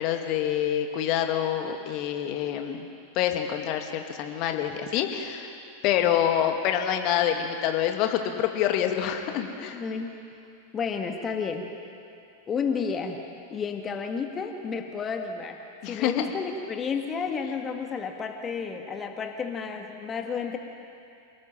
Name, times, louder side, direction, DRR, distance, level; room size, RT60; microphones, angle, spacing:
voice 1, 0.0-2.9 3.1-5.5 5.8-9.8 15.8-16.2, left 10 dB, 40° left, 5 dB, 2.2 m, -26 dB
voice 2, 9.7-10.1 10.7-11.7 12.5-13.2 13.5-15.6 15.9-20.6, left 5 dB, 25° left, 4 dB, 1.9 m, -31 dB
28.0 x 18.5 x 7.6 m, 2.6 s
figure-of-eight pair, 90°, 0 cm